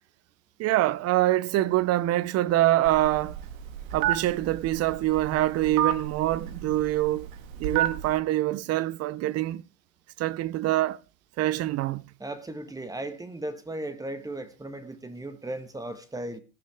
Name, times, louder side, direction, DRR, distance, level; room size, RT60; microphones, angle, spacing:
voice 1, 0.6-3.4 3.9-7.3 7.6-9.6 10.2-11.0 11.4-12.1, right 15 dB, 35° right, 0.7 m, -25 dB
Telephone, 2.9-8.2, right 11 dB, 75° right, 2.0 m, -31 dB
voice 2, 12.2-16.4, right 1 dB, 10° right, 1.4 m, -36 dB
16.5 x 11.5 x 3.5 m
supercardioid pair, 125°, 41 cm